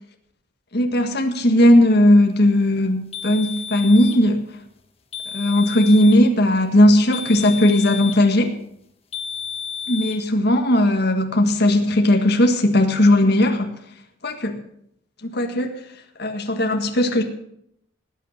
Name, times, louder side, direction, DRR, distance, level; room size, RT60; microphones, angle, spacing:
voice 1, 0.7-4.4 5.3-8.5 9.9-13.7 14.2-14.6 15.2-15.7 16.2-17.2, left 1 dB, 55° left, 3 dB, 1.7 m, -17 dB
sound 1, 3.1-4.2 5.1-6.2 7.1-8.3 9.1-10.2, left 7 dB, 30° left, 1.4 m, -32 dB
19.0 x 9.1 x 6.5 m, 0.73 s
head